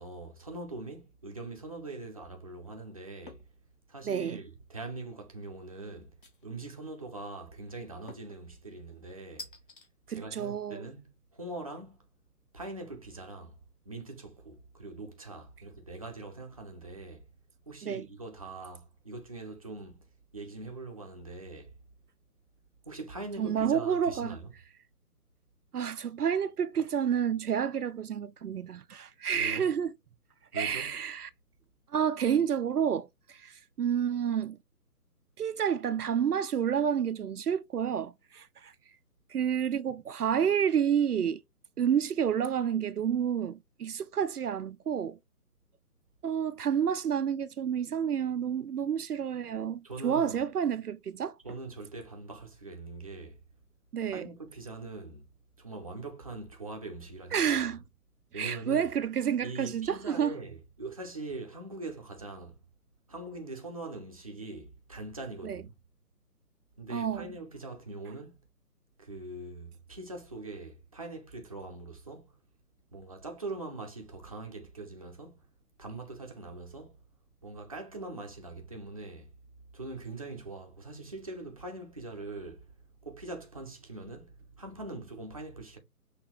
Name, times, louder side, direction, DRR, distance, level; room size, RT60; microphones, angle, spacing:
voice 1, 0.0-3.4 3.9-6.1 6.4-9.5 10.1-12.1 12.5-13.6 13.8-17.3 17.7-20.1 20.3-21.7 22.9-24.5 29.3-29.8 30.5-31.0 49.8-50.4 51.4-53.4 54.1-55.3 55.6-57.7 58.3-58.9 59.4-62.6 63.1-65.7 66.8-68.4 69.0-72.4 72.9-75.4 75.8-77.0 77.4-79.3 79.7-85.8, right 2 dB, 25° right, 0.6 m, -42 dB
sound 1, 3.3-3.6 4.0-4.5 6.2-6.8 8.1-8.4 9.4-9.9, left 3 dB, 35° left, 0.9 m, -48 dB
voice 2, 4.1-4.4 10.1-10.9 17.8-18.0 23.4-24.4 25.7-29.9 30.5-31.3 31.9-34.6 35.4-38.7 39.3-41.4 41.8-45.2 46.2-51.4 53.9-54.3 57.3-57.8 58.3-60.4 65.4-65.6 66.9-67.3, right 8 dB, 75° right, 0.5 m, -29 dB
6.0 x 2.9 x 3.0 m
figure-of-eight pair, 145°, 47 cm